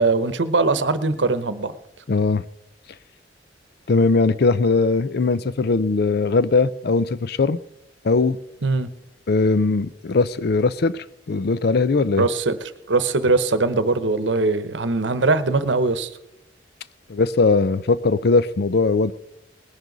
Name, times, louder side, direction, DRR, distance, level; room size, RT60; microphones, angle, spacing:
voice 1, 0.0-1.8 8.6-8.9 12.2-16.1, right 3 dB, 70° right, 0.9 m, -21 dB
voice 2, 2.1-2.4 3.9-7.6 8.0-8.4 9.3-12.3 17.1-19.1, left 3 dB, 55° left, 0.5 m, -20 dB
19.5 x 11.0 x 4.0 m
head